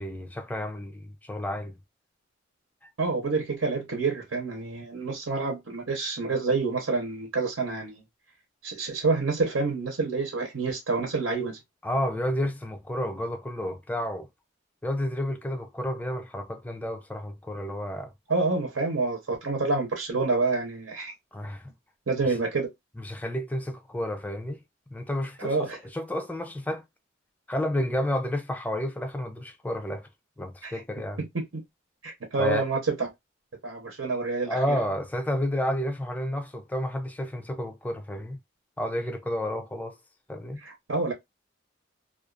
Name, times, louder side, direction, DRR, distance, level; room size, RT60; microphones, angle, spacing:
voice 1, 0.0-1.7 11.8-14.3 14.8-18.1 21.3-21.7 22.2-22.4 23.0-24.6 24.9-26.8 27.5-30.1 30.4-31.2 32.4-32.6 34.4-38.4 38.8-40.0 40.3-40.6, left 1 dB, 10° left, 0.4 m, -31 dB
voice 2, 3.0-7.9 8.6-11.6 18.3-21.1 22.1-22.7 25.4-25.8 30.6-30.8 31.2-31.4 32.0-33.1 33.6-34.6 40.6-41.1, right 3 dB, 85° right, 0.9 m, -28 dB
2.5 x 2.4 x 2.4 m
head